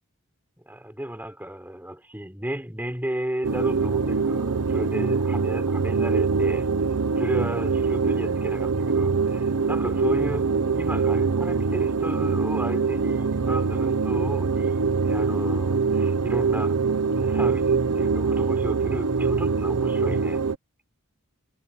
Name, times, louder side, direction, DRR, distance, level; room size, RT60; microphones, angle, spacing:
voice 1, 0.7-6.7 7.2-16.8 17.2-20.4, right 1 dB, 10° right, 4.2 m, -34 dB
sound 1, 3.4-20.5, right 4 dB, 75° right, 0.9 m, -24 dB
head